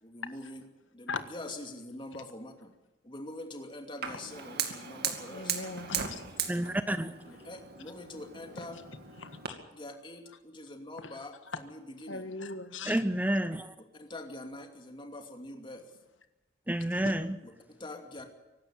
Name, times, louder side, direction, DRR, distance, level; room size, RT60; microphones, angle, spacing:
voice 1, 0.0-2.7 3.0-5.5 7.3-8.8 9.7-12.3 13.8-15.9 17.4-18.3, left 1 dB, 25° left, 2.8 m, -44 dB
Fire, 4.0-9.5, right 8 dB, 55° right, 2.3 m, -38 dB
voice 2, 5.3-6.2 9.2-9.6 11.0-11.1 12.1-13.0 17.0-17.1, left 3 dB, 85° left, 1.6 m, -39 dB
voice 3, 6.5-7.1 12.9-13.7 16.7-17.4, right 1 dB, 10° right, 0.7 m, -29 dB
24.0 x 12.0 x 9.0 m
head